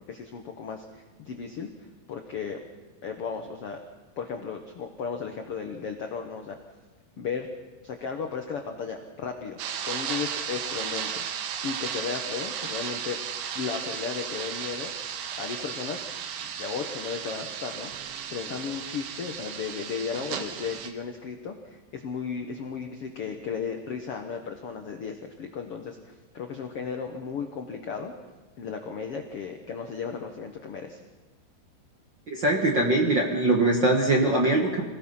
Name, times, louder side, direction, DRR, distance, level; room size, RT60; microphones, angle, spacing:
voice 1, 0.1-1.7 2.1-2.6 3.0-3.8 4.2-6.6 7.2-7.5 7.8-9.6 9.8-13.2 13.5-14.9 15.4-16.1 16.4-17.9 18.3-28.1 28.6-31.0, left 6 dB, 80° left, 4 dB, 1.3 m, -35 dB
sound 1, 9.6-20.9, right 8 dB, 90° right, 3.4 m, -35 dB
voice 2, 32.3-34.8, right 2 dB, 50° right, 0 dB, 1.4 m, -22 dB
26.5 x 18.0 x 5.6 m, 1.3 s
omnidirectional pair, 4.7 m